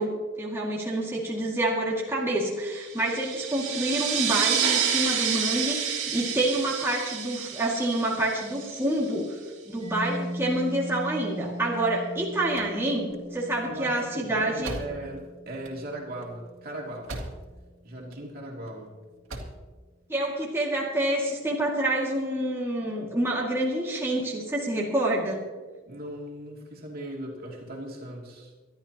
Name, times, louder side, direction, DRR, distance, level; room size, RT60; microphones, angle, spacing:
voice 1, 0.0-9.4 9.7-14.8 20.1-25.4, right 1 dB, 10° right, -4 dB, 2.2 m, -27 dB
sound 1, 2.8-9.0, right 8 dB, 65° right, 2.4 m, -29 dB
Mallet percussion, 9.8-17.3, equal, 30° right, 4.6 m, -39 dB
sound 2, 12.3-17.7 18.0-18.7 19.1-19.7, right 1 dB, 85° right, 2.3 m, -41 dB
voice 2, 13.6-17.2 17.8-18.9 25.9-28.5, right 1 dB, 50° right, -2 dB, 2.9 m, -38 dB
25.0 x 12.0 x 3.0 m, 1.4 s
head